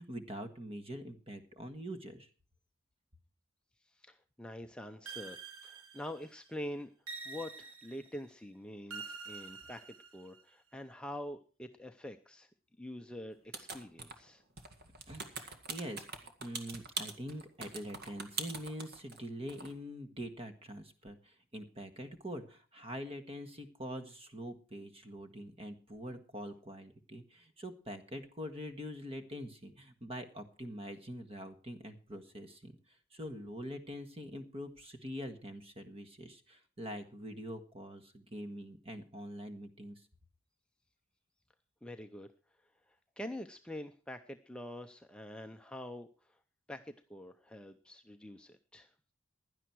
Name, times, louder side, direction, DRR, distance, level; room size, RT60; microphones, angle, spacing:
voice 1, 0.0-2.3 15.1-40.0, equal, 30° right, 8 dB, 1.6 m, -44 dB
voice 2, 3.8-5.4 5.6-6.9 7.2-12.5 12.8-14.4 41.8-42.3 42.9-46.4 46.7-48.9, left 1 dB, 5° left, 5 dB, 0.6 m, -45 dB
sound 1, 5.1-6.4 7.1-8.2 8.9-10.4, right 4 dB, 90° right, 1.8 m, -47 dB
sound 2, 13.5-14.3 14.6-19.2 19.5-19.7, right 4 dB, 50° right, 1.9 m, -42 dB
16.5 x 11.0 x 4.6 m, 0.37 s
head